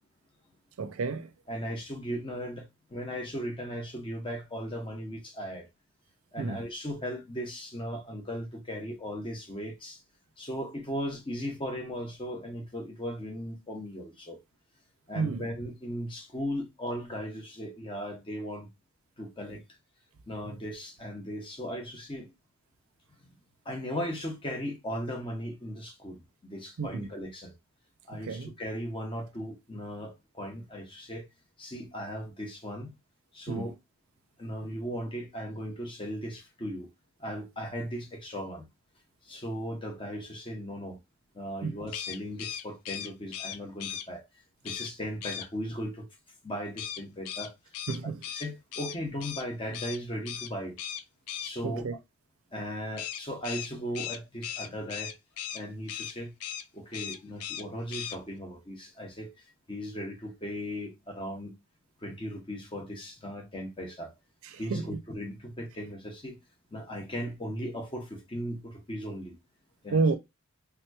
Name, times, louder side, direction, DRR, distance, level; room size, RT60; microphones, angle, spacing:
voice 1, 0.8-1.3 6.4-6.6 15.1-15.5 26.8-27.1 28.1-28.5 33.5-33.7 41.6-41.7 47.9-48.2 51.6-51.9 64.5-65.0 69.9-70.2, right 4 dB, 70° right, 0.5 m, -30 dB
voice 2, 1.5-5.7 6.3-10.0 10.4-14.4 15.1-18.7 19.2-19.6 20.3-22.3 23.2-23.3 23.6-27.5 28.1-31.3 31.6-32.9 33.3-33.7 34.4-36.9 37.2-38.6 39.2-41.0 41.3-44.3 44.6-46.1 46.4-47.5 48.0-50.8 51.4-51.9 52.5-55.1 55.5-56.3 56.7-61.5 62.0-64.2 64.6-66.4 66.7-69.4 69.8-70.0, equal, 25° left, 0.8 m, -37 dB
sound 1, 41.9-44.1 44.6-44.9 45.2-45.5 46.8-49.4 49.7-50.0 50.2-50.5 50.8-51.5 53.0-55.6 55.9-56.1 56.4-56.6 56.9-57.6 57.9-58.2, left 10 dB, 85° left, 0.4 m, -37 dB
3.5 x 2.9 x 2.2 m
head